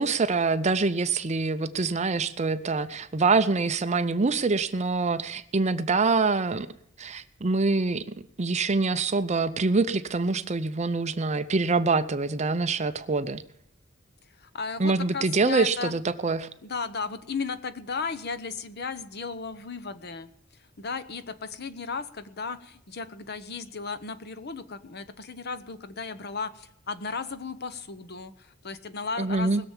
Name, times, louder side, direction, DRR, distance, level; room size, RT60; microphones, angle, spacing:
voice 1, 0.0-6.7 7.0-8.0 8.4-13.4 14.8-16.5 29.2-29.6, right 3 dB, 35° right, 12 dB, 0.6 m, -25 dB
voice 2, 14.4-15.9 16.6-20.3 20.8-29.7, left 4 dB, 55° left, 12 dB, 1.0 m, -35 dB
20.5 x 7.0 x 7.3 m, 0.75 s
head